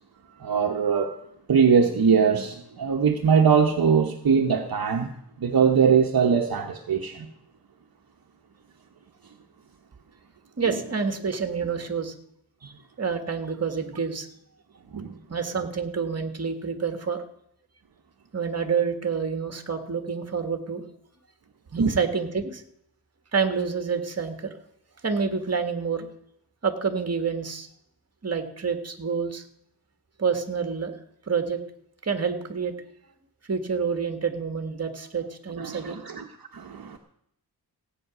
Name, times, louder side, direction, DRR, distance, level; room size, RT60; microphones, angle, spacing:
voice 1, 0.4-1.2 1.5-7.3 10.7-10.8 14.9-15.2 21.8-21.9 35.6-36.3 36.5-37.0, right 6 dB, 60° right, 3 dB, 1.2 m, -22 dB
voice 2, 10.6-12.1 12.6-14.3 15.3-17.2 18.3-20.8 21.7-22.6 23.3-24.5 25.0-26.1 26.6-27.7 28.2-29.4 30.2-30.9 31.3-31.6 32.0-32.7 33.5-36.1, right 5 dB, 40° right, 7 dB, 1.7 m, -28 dB
16.0 x 8.8 x 6.2 m, 0.73 s
wide cardioid pair, 110°, 40 cm